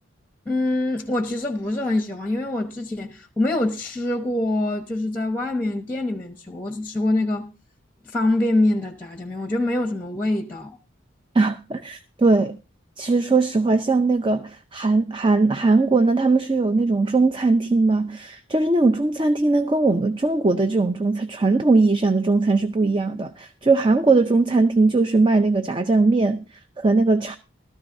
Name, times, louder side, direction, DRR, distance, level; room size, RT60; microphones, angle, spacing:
voice 1, 0.5-7.5 8.0-10.8, left 2 dB, 10° left, 1.0 m, -24 dB
voice 2, 11.3-12.6 13.0-26.4 26.8-27.4, right 3 dB, 25° right, 0.5 m, -20 dB
17.0 x 13.0 x 2.7 m
head